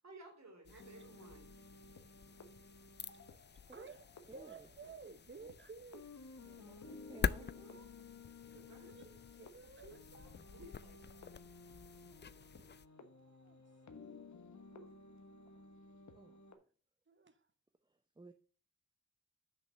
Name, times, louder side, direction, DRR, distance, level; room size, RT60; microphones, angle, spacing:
voice 1, 0.0-1.6 4.8-4.9 7.0-7.9 8.5-8.9 9.6-11.1 14.7-14.9, right 1 dB, 65° right, 3 dB, 3.0 m, -58 dB
sound 1, 0.6-12.9, left 6 dB, 40° left, 0.4 m, -46 dB
sound 2, 0.8-16.5, left 4 dB, 75° left, 1.2 m, -56 dB
voice 2, 3.7-6.1 6.4-6.8 8.0-8.1 8.5-10.0 12.4-12.5 13.0-13.6 16.2-16.4 17.1-17.5, right 4 dB, 40° right, 10 dB, 1.0 m, -55 dB
voice 3, 4.3-4.7 5.4-5.5 6.6-7.5 16.1-16.6 17.8-18.3, right 2 dB, 15° right, 7 dB, 0.6 m, -57 dB
6.7 x 5.3 x 6.6 m, 0.40 s
wide cardioid pair, 95°, 29 cm